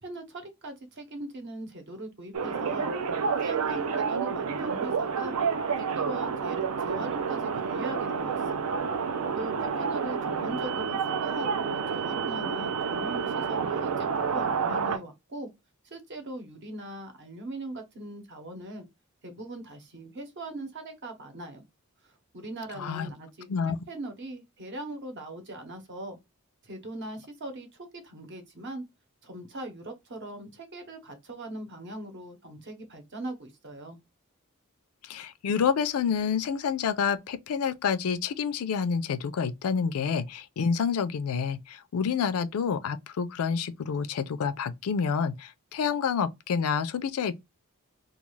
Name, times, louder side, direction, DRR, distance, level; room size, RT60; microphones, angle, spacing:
voice 1, 0.0-2.9 3.4-5.4 5.7-8.8 9.4-14.1 14.3-15.5 15.9-18.8 19.2-21.7 22.0-23.5 23.9-26.2 26.6-28.8 29.2-34.0, right 1 dB, 55° right, 0.8 m, -40 dB
sound 1, 2.3-15.0, right 6 dB, 85° right, 0.5 m, -29 dB
voice 2, 22.8-23.1 23.5-23.8 35.0-47.3, left 6 dB, 90° left, 0.4 m, -28 dB
2.3 x 2.3 x 3.1 m
head